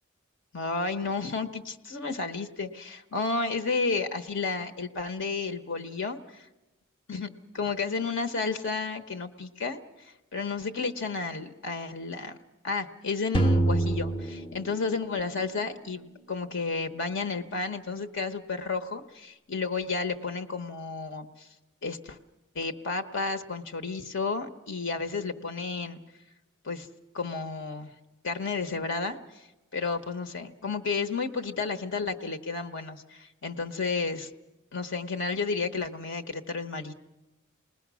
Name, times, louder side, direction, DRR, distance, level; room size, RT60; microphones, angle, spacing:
voice 1, 0.5-6.2 7.1-12.4 12.6-21.5 21.8-22.2 22.5-26.0 26.6-26.9 27.1-27.9 28.2-29.4 29.7-34.3 34.7-36.9, left 4 dB, 60° left, 8 dB, 1.0 m, -32 dB
sound 1, 13.3-15.5, right 2 dB, 25° left, 0.8 m, -26 dB
28.0 x 19.5 x 6.2 m, 1.0 s
head